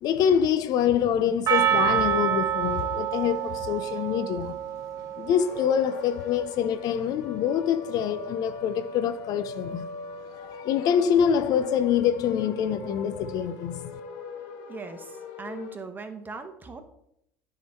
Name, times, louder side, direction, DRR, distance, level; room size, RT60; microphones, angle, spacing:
voice 1, 0.0-4.6 5.2-9.9 10.3-13.9, left 8 dB, 50° left, 0.5 m, -25 dB
Percussion, 1.5-5.9, right 9 dB, 45° right, 1.0 m, -27 dB
sound 1, 5.4-15.8, left 4 dB, 70° left, 1.1 m, -40 dB
voice 2, 14.7-16.8, right 4 dB, 20° right, 1.2 m, -39 dB
9.9 x 3.8 x 4.4 m
hypercardioid pair, 80°, 8 cm